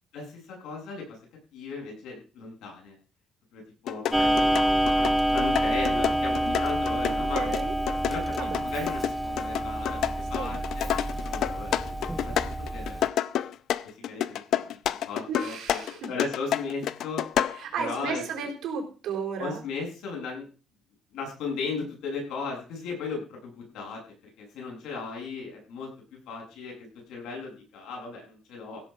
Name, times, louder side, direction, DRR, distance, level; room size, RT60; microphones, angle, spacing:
voice 1, 0.1-1.2 1.5-3.0 3.5-7.6 8.1-8.3 8.6-10.0 10.3-10.9 11.2-12.3 12.7-13.1 14.0-15.8 16.1-17.2 17.8-18.2 19.4-20.5 21.1-24.0 24.4-25.9 26.3-28.8, left 4 dB, 85° left, 0 dB, 7.9 m, -36 dB
sound 1, 3.9-17.6, left 10 dB, 55° left, 0.6 m, -29 dB
Clock, 4.1-13.1, right 1 dB, 5° right, 0.6 m, -27 dB
voice 2, 7.1-7.7 8.4-8.6 10.4-10.5 15.3-16.1 17.5-19.6, right 5 dB, 55° right, 1 dB, 4.8 m, -34 dB
16.5 x 7.7 x 5.9 m, 0.36 s
cardioid pair, 180°, 0 cm